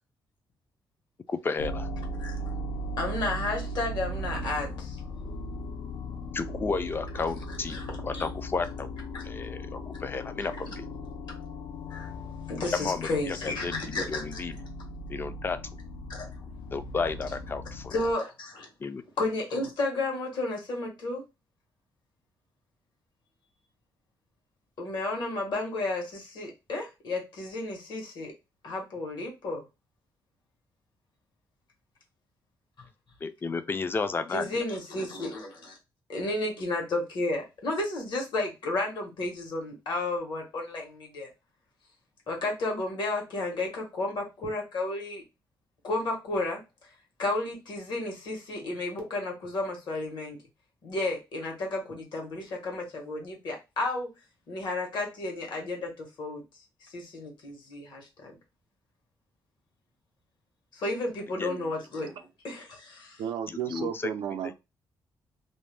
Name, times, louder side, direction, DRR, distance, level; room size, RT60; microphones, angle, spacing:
voice 1, 1.3-1.9 6.3-8.9 9.2-10.9 12.7-14.6 15.1-15.6 16.7-17.9 18.8-19.0 33.2-34.7 61.4-61.5 63.5-64.1, left 4 dB, 30° left, 0.3 m, -32 dB
sound 1, 1.6-18.1, equal, 90° left, 0.5 m, -38 dB
voice 2, 3.0-5.0 7.7-7.9 8.1-8.2 9.1-9.2 11.9-12.1 12.5-14.4 16.1-16.3 17.9-18.7 19.2-21.2 24.8-28.3 28.6-29.6 34.3-35.8 36.1-41.3 42.3-45.2 45.8-46.6 47.2-50.4 50.8-54.1 54.5-56.4 56.8-58.3 60.7-63.2, left 2 dB, 70° left, 1.2 m, -32 dB
voice 3, 61.4-61.7 63.2-64.5, right 9 dB, 85° right, 0.4 m, -34 dB
2.6 x 2.1 x 3.2 m
cardioid pair, 120°, 8 cm